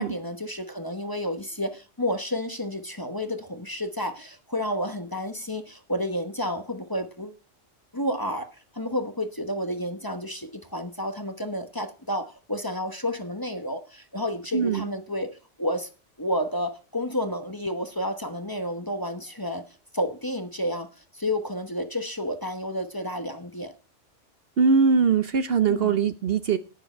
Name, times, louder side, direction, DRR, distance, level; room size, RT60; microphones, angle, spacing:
voice 1, 0.0-7.3 7.9-15.9 16.2-19.6 19.9-23.7 25.7-26.0, left 1 dB, 20° left, 1.0 m, -31 dB
voice 2, 14.5-14.9 24.6-26.6, right 5 dB, 55° right, 0.9 m, -21 dB
10.5 x 9.9 x 4.3 m
omnidirectional pair, 1.2 m